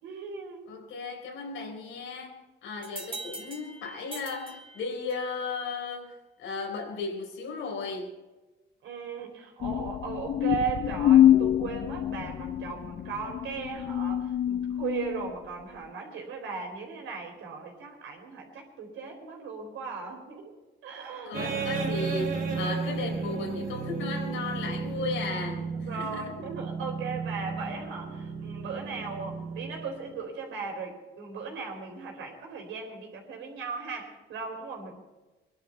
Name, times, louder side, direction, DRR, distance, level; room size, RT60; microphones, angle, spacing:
voice 1, 0.0-0.7 8.8-20.5 20.8-21.4 21.8-21.9 25.8-35.0, right 5 dB, 85° right, 2 dB, 4.3 m, -37 dB
voice 2, 0.7-2.4 2.6-8.1 21.2-26.3, left 4 dB, 85° left, 1 dB, 4.3 m, -35 dB
sound 1, 2.8-5.4, right 3 dB, 25° right, 2.9 m, -43 dB
sound 2, 9.6-15.3, left 11 dB, 45° left, 0.4 m, -25 dB
sound 3, 21.3-30.2, right 4 dB, 45° right, 2.4 m, -33 dB
22.0 x 11.5 x 4.5 m, 1.1 s
cardioid pair, 90°, 20 cm